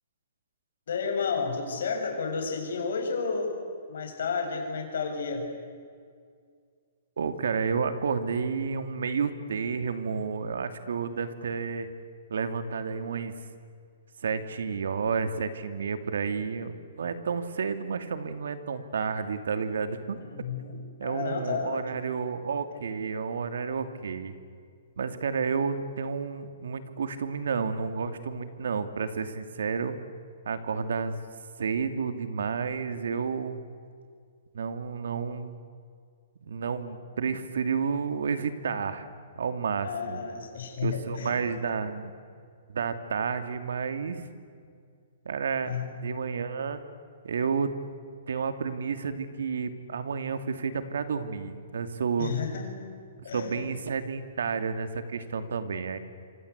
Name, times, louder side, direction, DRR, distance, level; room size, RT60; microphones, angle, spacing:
voice 1, 0.9-3.6 3.9-5.5 20.2-21.8 39.8-41.4 45.7-45.9 52.2-52.8 53.2-53.6, left 5 dB, 65° left, 4 dB, 7.1 m, -31 dB
voice 2, 7.2-11.9 12.3-13.3 14.2-20.2 21.0-24.3 25.0-29.9 30.4-31.2 31.6-33.6 34.5-35.6 36.4-39.1 39.4-40.2 40.8-42.1 42.7-44.3 45.2-46.8 47.2-47.7 48.3-52.3 53.3-56.0, right 5 dB, 80° right, 9 dB, 2.7 m, -31 dB
27.0 x 26.5 x 8.3 m, 2.2 s
hypercardioid pair, 170°, 0 cm